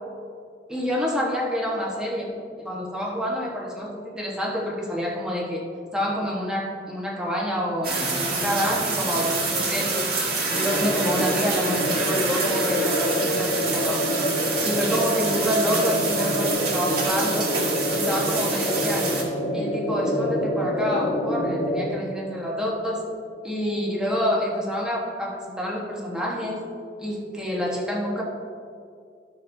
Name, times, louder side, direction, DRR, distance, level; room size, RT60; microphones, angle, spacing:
voice 1, 0.7-2.3 2.6-5.7 5.9-10.1 10.5-14.1 14.6-17.5 17.9-19.2 19.5-23.0 23.4-26.6 27.0-28.2, equal, 5° right, -3 dB, 1.2 m, -27 dB
sound 1, 7.8-19.2, right 3 dB, 60° right, 2.0 m, -27 dB
sound 2, 10.5-21.9, equal, 55° left, 1.2 m, -27 dB
13.5 x 6.6 x 2.7 m, 2.3 s
head